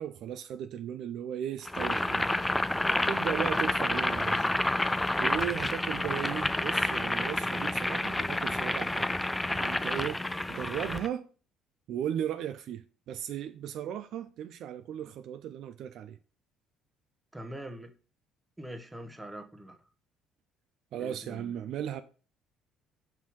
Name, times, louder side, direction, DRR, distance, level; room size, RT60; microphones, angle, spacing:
voice 1, 0.0-2.5 3.1-4.5 5.2-9.2 9.5-10.2 10.5-11.3 11.9-16.2 20.9-22.0, right 10 dB, 60° right, 0.3 m, -36 dB
Boiling, 1.7-11.1, left 1 dB, 10° left, 0.4 m, -29 dB
voice 2, 17.3-17.9 18.6-19.8 21.0-21.5, right 1 dB, 10° right, 0.9 m, -43 dB
5.5 x 3.1 x 5.5 m
hypercardioid pair, 55°, 0 cm